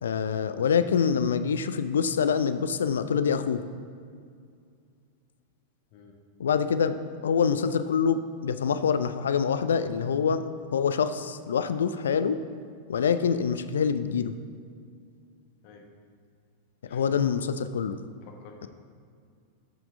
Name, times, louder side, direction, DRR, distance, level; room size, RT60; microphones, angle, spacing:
voice 1, 0.0-3.6 6.4-10.4 10.7-12.4 12.9-14.3 16.9-18.0 18.6-18.7, left 6 dB, 65° left, 11 dB, 0.3 m, -25 dB
voice 2, 18.2-18.7, left 5 dB, 45° left, 2 dB, 1.0 m, -51 dB
8.2 x 6.0 x 3.8 m, 2.3 s
figure-of-eight pair, 90°, 0 cm